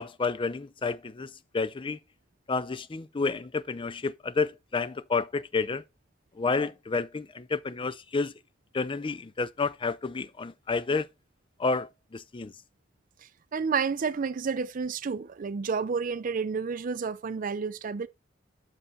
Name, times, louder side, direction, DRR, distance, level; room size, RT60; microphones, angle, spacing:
voice 1, 0.0-2.0 2.5-5.8 6.4-8.3 8.7-11.1 11.6-12.5, left 4 dB, 25° left, 0.5 m, -30 dB
voice 2, 13.5-18.1, right 5 dB, 45° right, 0.4 m, -30 dB
7.8 x 5.6 x 4.0 m
head